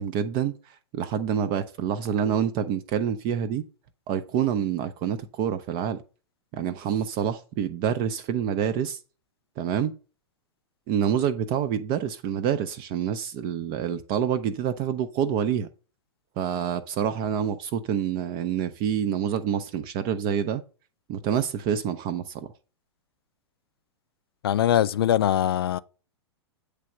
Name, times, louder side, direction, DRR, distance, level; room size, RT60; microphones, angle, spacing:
voice 1, 0.0-3.6 4.1-6.0 6.5-9.0 9.6-9.9 10.9-15.7 16.4-20.6 21.1-22.5, right 8 dB, 35° right, 0.5 m, -27 dB
voice 2, 24.4-25.8, left 11 dB, 55° left, 0.4 m, -22 dB
8.4 x 3.3 x 6.2 m
figure-of-eight pair, 100°, 15 cm